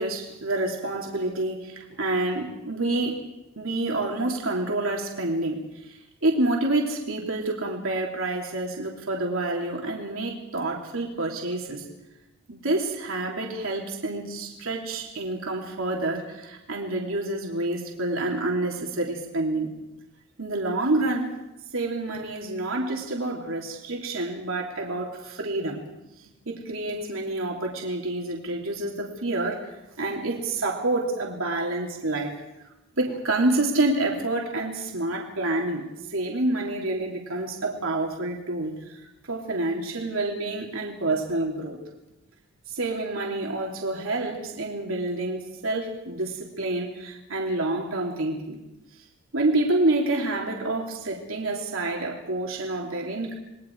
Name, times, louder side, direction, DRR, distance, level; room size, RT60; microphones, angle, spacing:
voice 1, 0.0-3.3 3.6-11.9 12.5-19.7 20.4-21.4 21.7-25.8 26.5-29.7 30.0-32.4 33.0-39.0 39.3-41.8 42.7-48.6 49.3-53.4, right 2 dB, 70° right, 0 dB, 3.3 m, -28 dB
28.5 x 21.5 x 4.8 m, 0.94 s
head